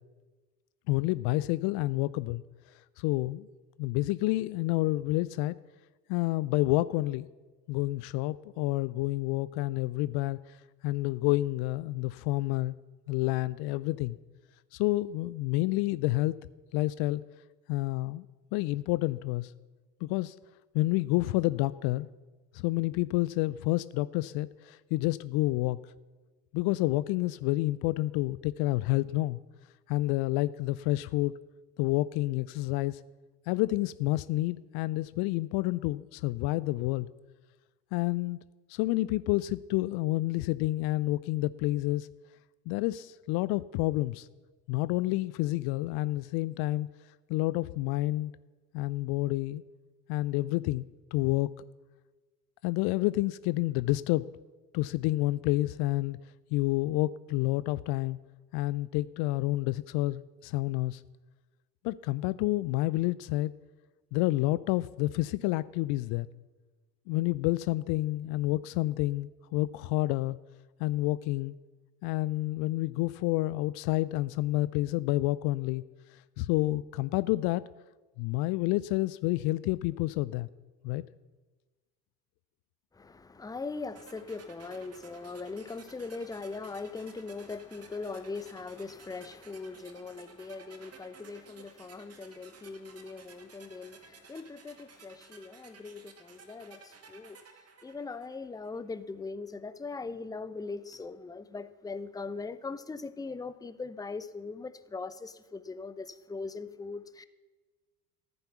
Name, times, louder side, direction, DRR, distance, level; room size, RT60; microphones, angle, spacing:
voice 1, 0.9-2.4 3.0-3.5 3.8-5.6 6.1-7.3 7.7-10.6 10.8-12.8 13.1-14.2 14.7-16.3 16.7-17.2 17.7-18.2 18.5-19.5 20.0-20.4 20.7-22.1 22.5-25.8 26.5-29.4 29.9-31.4 31.8-33.0 33.5-37.1 37.9-38.4 38.7-42.1 42.7-44.3 44.7-46.9 47.3-48.3 48.7-49.6 50.1-51.5 52.6-54.3 54.7-56.2 56.5-58.2 58.5-61.0 61.8-63.5 64.1-66.3 67.1-70.4 70.8-71.5 72.0-75.8 76.1-77.6 78.2-80.5 80.8-81.0, left 18 dB, 50° left, 0.5 m, -29 dB
voice 2, 82.9-97.4 97.8-107.2, left 4 dB, 10° left, 0.7 m, -40 dB
sound 1, 84.0-98.9, right 5 dB, 30° right, 2.1 m, -55 dB
14.0 x 9.7 x 7.0 m
hypercardioid pair, 70°, 48 cm